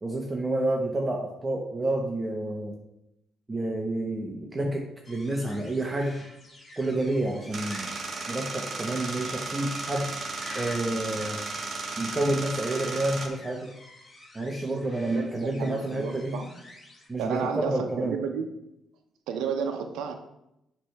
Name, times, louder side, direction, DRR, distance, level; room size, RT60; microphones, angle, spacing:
voice 1, 0.0-2.8 3.5-6.2 6.8-7.9 8.3-10.0 10.5-11.4 12.0-13.7 14.3-16.3 17.1-18.1, right 2 dB, 20° right, 0 dB, 0.9 m, -29 dB
sound 1, 5.0-17.1, left 1 dB, 30° left, 1.6 m, -49 dB
sound 2, 7.5-13.3, right 3 dB, 45° right, 1.1 m, -35 dB
voice 2, 15.1-16.5 17.2-18.5 19.3-20.1, right 6 dB, 90° right, 5 dB, 0.7 m, -32 dB
7.3 x 3.3 x 5.7 m, 0.85 s
cardioid pair, 90°, 0 cm